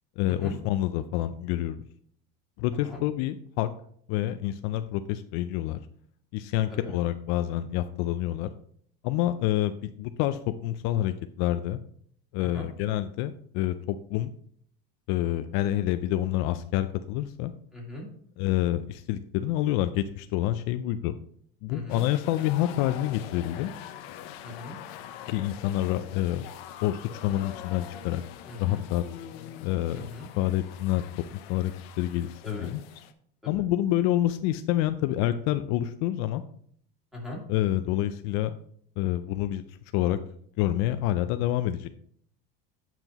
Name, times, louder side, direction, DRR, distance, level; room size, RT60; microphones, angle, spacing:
voice 1, 0.2-1.8 2.6-3.7 4.1-5.8 6.3-8.5 9.0-11.8 12.3-14.3 15.1-17.5 18.4-21.1 21.6-23.7 25.3-26.5 26.8-26.9 27.2-28.2 28.6-29.0 29.6-31.1 31.5-31.7 32.0-32.8 33.5-36.4 37.5-38.6 39.0-40.2 40.6-41.9, left 13 dB, 60° left, 10 dB, 0.5 m, -27 dB
voice 2, 17.7-18.1 21.7-22.0 24.4-24.7 28.5-28.8 29.9-30.3 32.4-32.7 33.4-33.7 37.1-37.4, left 1 dB, ahead, -3 dB, 2.4 m, -39 dB
sound 1, 21.9-33.1, left 10 dB, 85° left, 0.8 m, -44 dB
9.0 x 5.9 x 2.9 m, 0.62 s
cardioid pair, 150°, 30 cm